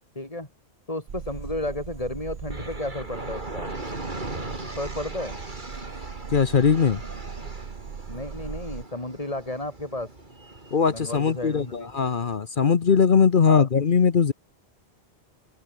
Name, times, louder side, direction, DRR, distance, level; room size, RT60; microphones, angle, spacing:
voice 1, 0.2-0.5 0.9-3.7 4.6-5.4 8.1-10.1 10.9-11.9 13.4-13.7, left 1 dB, 35° left, 4.0 m, -33 dB
sound 1, 1.1-8.8, right 6 dB, 80° right, 1.5 m, -39 dB
sound 2, 2.5-12.4, right 2 dB, 45° right, 3.5 m, -39 dB
voice 2, 6.3-7.0 10.7-14.3, left 6 dB, 55° left, 1.1 m, -20 dB
open air
omnidirectional pair, 1.1 m